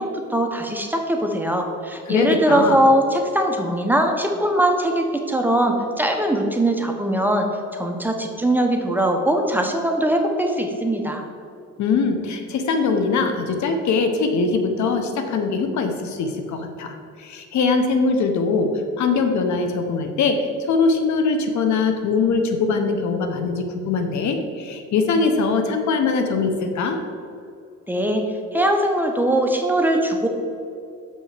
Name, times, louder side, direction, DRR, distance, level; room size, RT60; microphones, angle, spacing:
voice 1, 0.0-7.5 7.7-11.2 27.9-30.3, right 1 dB, 5° right, 2 dB, 0.9 m, -21 dB
voice 2, 2.1-2.8 11.8-27.0, left 4 dB, 70° left, 6 dB, 0.9 m, -22 dB
7.2 x 5.5 x 4.9 m, 2.6 s
cardioid pair, 90°, 30 cm